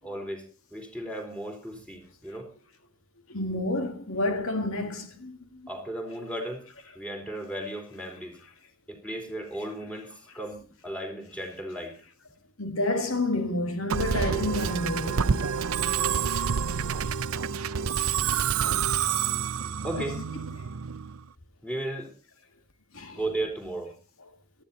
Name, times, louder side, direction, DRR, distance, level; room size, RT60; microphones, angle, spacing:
voice 1, 0.0-2.5 5.7-6.7 6.9-8.4 8.9-12.0 17.9-18.0 19.8-20.2 21.6-22.1 23.1-23.9, right 1 dB, 5° left, 4.0 m, -35 dB
voice 2, 3.3-5.7 12.6-15.4 20.0-20.1 22.9-23.2, left 2 dB, 75° left, 2.2 m, -29 dB
Musical instrument, 13.9-21.2, right 7 dB, 80° right, 0.6 m, -28 dB
18.0 x 13.5 x 4.1 m
head